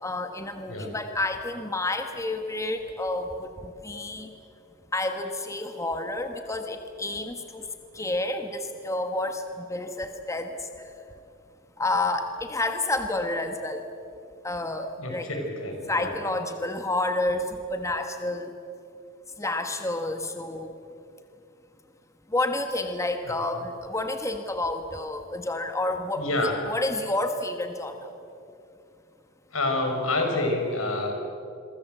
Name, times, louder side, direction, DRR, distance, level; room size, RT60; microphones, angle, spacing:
voice 1, 0.0-4.3 4.9-7.6 7.9-10.6 11.8-13.8 14.4-15.3 15.9-18.5 19.4-20.7 22.3-26.3 26.7-28.1, left 2 dB, 15° left, 6 dB, 1.3 m, -29 dB
voice 2, 15.0-16.1 23.3-23.4 26.2-26.6 29.5-31.1, left 2 dB, 90° left, 3 dB, 5.7 m, -28 dB
27.5 x 23.0 x 7.9 m, 2.7 s
head